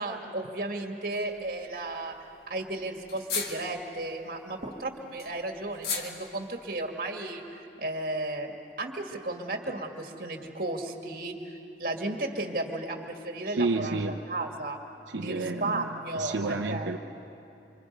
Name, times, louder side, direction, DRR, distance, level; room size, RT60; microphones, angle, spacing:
voice 1, 0.0-2.1 2.5-14.0 14.3-14.8 15.2-16.9, right 2 dB, 50° right, 3 dB, 2.1 m, -34 dB
sound 1, 1.2-1.6 1.8-1.9 2.1-2.2 2.5-2.6 3.0-4.0 4.6-6.7, left 5 dB, 55° left, 2.1 m, -36 dB
voice 2, 13.6-14.2 15.1-15.9 16.1-17.0, right 3 dB, 85° right, 2 dB, 0.9 m, -30 dB
27.5 x 26.5 x 5.4 m, 2.7 s
head